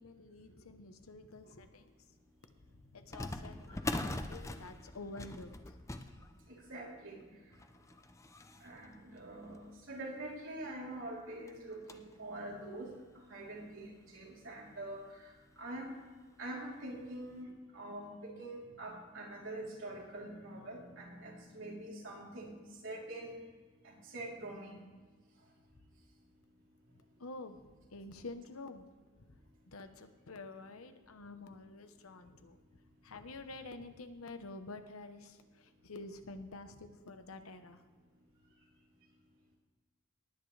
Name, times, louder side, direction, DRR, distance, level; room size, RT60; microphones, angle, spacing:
voice 1, 0.0-1.9 2.7-5.8 27.2-28.9 29.7-32.6 33.0-37.8, left 2 dB, 80° left, 9 dB, 1.0 m, -49 dB
sound 1, 1.7-1.8 3.1-10.1 10.6-10.7 11.0-11.1 11.5-12.2 12.7-12.8 13.7-13.8 14.1-14.3 15.6-15.9 16.3-16.4 17.0-17.2, left 1 dB, 15° left, 0.6 m, -43 dB
voice 2, 6.5-7.2 8.6-16.0 16.4-23.4 23.8-24.8, right 1 dB, 60° right, -3 dB, 3.5 m, -45 dB
18.5 x 9.6 x 3.3 m, 1.3 s
head